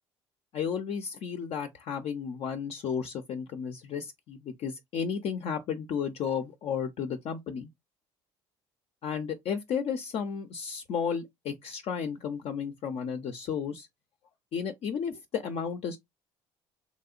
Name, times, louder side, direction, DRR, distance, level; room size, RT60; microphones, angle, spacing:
voice 1, 0.5-7.7 9.0-13.9 14.5-16.0, left 7 dB, 60° left, 0.5 m, -33 dB
3.1 x 2.8 x 2.4 m
supercardioid pair, 80°, 12 cm